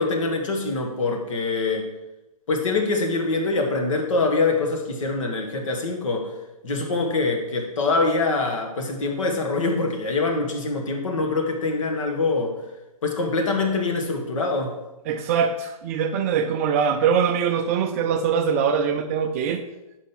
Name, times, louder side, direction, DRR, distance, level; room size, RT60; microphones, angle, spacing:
voice 1, 0.0-1.9 2.5-6.3 6.6-12.6 13.0-14.8, left 3 dB, 55° left, 3 dB, 1.5 m, -24 dB
voice 2, 15.1-19.6, right 7 dB, 25° right, 6 dB, 0.4 m, -22 dB
5.3 x 5.2 x 5.8 m, 0.99 s
figure-of-eight pair, 125°, 19 cm